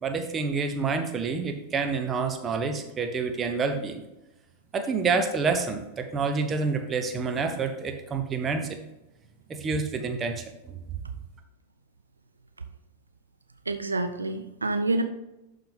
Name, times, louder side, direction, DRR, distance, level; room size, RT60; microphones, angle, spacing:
voice 1, 0.0-4.0 4.7-8.7 9.5-10.8, right 4 dB, 20° right, 6 dB, 1.0 m, -28 dB
voice 2, 13.7-15.0, right 2 dB, 80° right, 7 dB, 0.5 m, -27 dB
11.5 x 4.0 x 3.5 m, 0.95 s
figure-of-eight pair, 90°, 0 cm